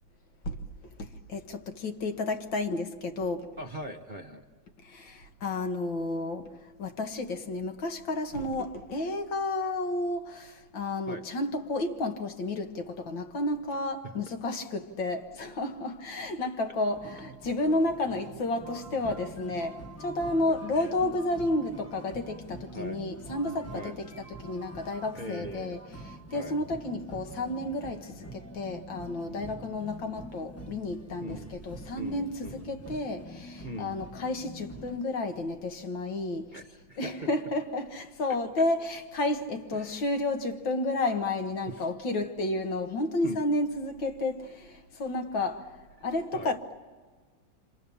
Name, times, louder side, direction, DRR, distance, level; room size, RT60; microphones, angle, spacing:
voice 1, 1.0-3.5 4.8-6.5 6.8-24.1 24.4-25.8 26.1-36.5 37.0-45.8 46.0-46.8, left 2 dB, 70° left, 2.2 m, -31 dB
voice 2, 3.6-4.4 11.1-11.2 14.0-14.1 20.7-20.9 22.7-23.0 23.7-24.0 25.1-25.8 26.3-26.6 29.3-29.7 31.2-31.6 32.0-32.7 33.6-33.9 36.5-37.3 38.3-38.7 39.7-40.0 41.7-41.9 43.2-43.4 46.3-46.5, right 1 dB, 35° right, 0.9 m, -41 dB
sound 1, 16.9-35.0, right 1 dB, 10° left, 1.3 m, -45 dB
29.0 x 26.0 x 7.1 m
omnidirectional pair, 2.1 m